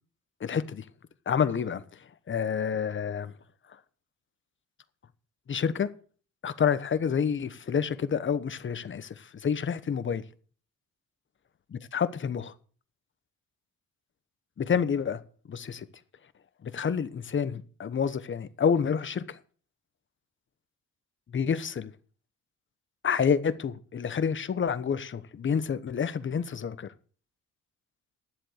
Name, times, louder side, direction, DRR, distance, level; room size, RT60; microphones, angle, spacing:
voice 1, 0.4-0.9 1.3-3.3 5.5-5.9 6.4-10.2 11.7-12.5 14.6-15.2 15.5-15.9 16.6-19.4 21.3-21.9 23.0-26.9, left 7 dB, 40° left, 1.1 m, -28 dB
11.0 x 7.6 x 6.6 m
cardioid pair, 90°, 30 cm